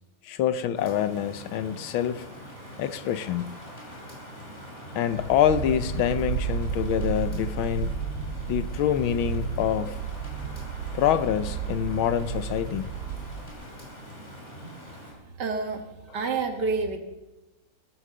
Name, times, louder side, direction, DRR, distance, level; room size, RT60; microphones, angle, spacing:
voice 1, 0.2-2.3 2.8-3.5 4.9-7.9 8.5-10.0 10.9-12.9, left 10 dB, 75° left, 13 dB, 1.4 m, -26 dB
Rain, 0.7-15.1, equal, 30° left, 5.8 m, -43 dB
sound 1, 5.1-13.5, right 8 dB, 85° right, 2.6 m, -32 dB
voice 2, 15.3-17.0, right 4 dB, 55° right, 5 dB, 2.0 m, -29 dB
17.5 x 8.7 x 6.7 m, 1.1 s
omnidirectional pair, 2.3 m